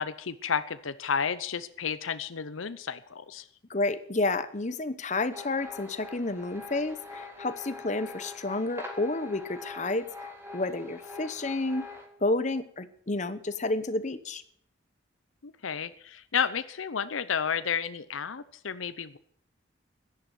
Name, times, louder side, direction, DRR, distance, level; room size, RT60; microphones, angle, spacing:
voice 1, 0.0-3.5 15.4-19.2, left 7 dB, 90° left, 13 dB, 0.7 m, -32 dB
voice 2, 3.7-10.1 10.5-11.9 12.2-14.4, left 2 dB, 35° left, 12 dB, 0.9 m, -30 dB
sound 1, 5.3-12.1, left 3 dB, 10° right, 2.0 m, -43 dB
12.0 x 10.5 x 8.7 m, 0.64 s
head